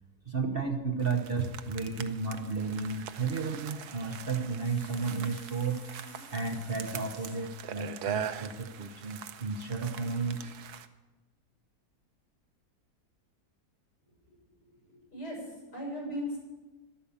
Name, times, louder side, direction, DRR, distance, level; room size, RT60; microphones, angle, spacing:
voice 1, 0.2-10.5, right 4 dB, 40° right, 4 dB, 1.0 m, -33 dB
sound 1, 1.0-10.9, right 9 dB, 70° right, 1.3 m, -42 dB
voice 2, 14.9-16.4, equal, 75° left, -3 dB, 7.2 m, -38 dB
13.0 x 12.0 x 7.1 m, 1.2 s
omnidirectional pair, 1.8 m